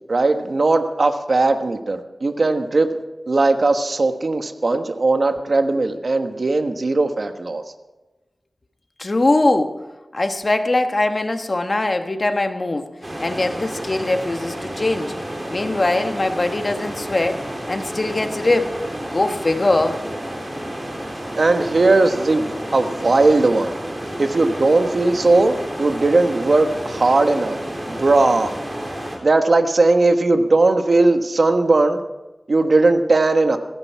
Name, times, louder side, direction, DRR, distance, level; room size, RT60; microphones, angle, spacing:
voice 1, 0.1-2.9 3.3-7.6 21.3-23.8 24.2-27.6 27.9-28.5 29.2-32.0 32.5-33.6, right 3 dB, 60° right, 6 dB, 1.3 m, -18 dB
voice 2, 9.0-9.8 10.1-12.9 13.2-15.1 15.5-20.0, left 2 dB, 40° left, 6 dB, 1.3 m, -21 dB
sound 1, 13.0-29.2, right 1 dB, 25° right, 3.7 m, -31 dB
16.0 x 14.5 x 4.7 m, 1.1 s
wide cardioid pair, 90°, 0 cm